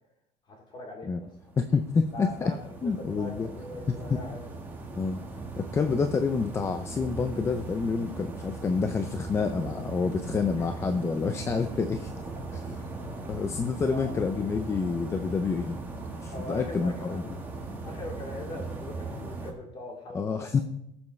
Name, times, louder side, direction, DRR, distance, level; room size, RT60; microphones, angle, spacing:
voice 1, 0.5-1.3 2.1-4.5 12.2-12.6 13.9-14.1 16.3-17.2 17.9-20.5, left 2 dB, 35° left, -1 dB, 3.5 m, -41 dB
sound 1, 1.4-19.5, right 3 dB, 15° right, 1.5 m, -39 dB
voice 2, 1.6-2.5 2.8-3.5 5.0-5.2 5.6-12.1 12.5-12.6 13.3-15.8 16.2-17.2 20.1-20.6, left 5 dB, 20° left, 8 dB, 0.5 m, -28 dB
19.0 x 7.1 x 3.2 m, 0.79 s
cardioid pair, 160°, 15 cm